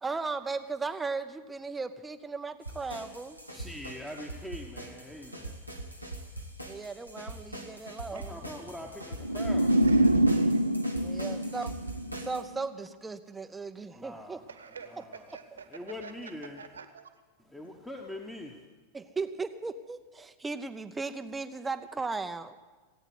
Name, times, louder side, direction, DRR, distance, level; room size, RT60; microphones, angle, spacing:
voice 1, 0.0-3.4 6.7-8.4 10.9-11.7 12.2-14.4 18.9-22.6, right 4 dB, 10° right, 10 dB, 0.7 m, -36 dB
sound 1, 2.6-12.4, right 1 dB, 90° left, 1.7 m, -42 dB
voice 2, 3.5-5.6 8.1-9.7 13.9-14.5 14.8-15.3 15.7-16.6 17.4-18.7, left 1 dB, 5° left, 1 dB, 1.3 m, -43 dB
sound 2, 9.2-12.4, right 1 dB, 85° right, 0.5 m, -25 dB
voice 3, 9.8-10.5 14.5-15.7 16.0-16.1 16.6-17.1 17.6-17.7, right 6 dB, 70° right, 9 dB, 1.3 m, -47 dB
18.0 x 9.2 x 8.1 m, 1.4 s
figure-of-eight pair, 90°, 0 cm